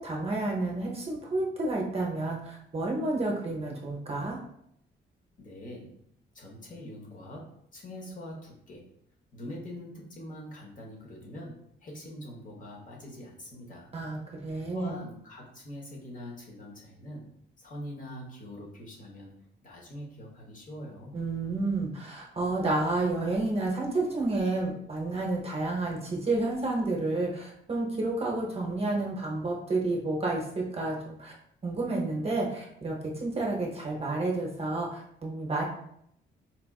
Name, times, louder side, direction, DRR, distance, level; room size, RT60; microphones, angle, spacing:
voice 1, 0.0-4.4 13.9-15.0 21.1-31.3 31.6-35.6, right 2 dB, 30° right, -2 dB, 0.7 m, -30 dB
voice 2, 5.4-5.9 6.3-8.8 9.3-13.9 14.7-17.3 17.6-19.3 19.6-21.2, left 1 dB, 45° left, -2 dB, 1.0 m, -43 dB
4.4 x 2.4 x 2.3 m, 0.72 s
cardioid pair, 115°, 19 cm